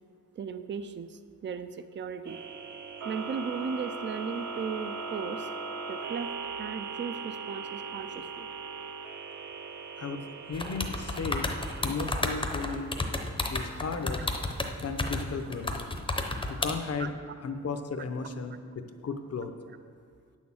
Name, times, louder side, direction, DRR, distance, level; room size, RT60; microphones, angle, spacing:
voice 1, 0.4-2.4 3.0-5.5 5.9-8.5 17.0-17.1, right 6 dB, 40° right, 11 dB, 0.4 m, -36 dB
sound 1, 2.2-16.5, right 4 dB, 70° right, 0.7 m, -41 dB
voice 2, 10.0-11.5 11.8-12.9 13.5-14.3 14.8-15.8 16.5-17.1 17.4-19.5, left 4 dB, 55° left, 8 dB, 0.8 m, -35 dB
sound 2, 10.5-16.7, left 2 dB, 15° left, 0.7 m, -31 dB
9.2 x 6.4 x 7.2 m, 2.1 s
wide cardioid pair, 165°, 30 cm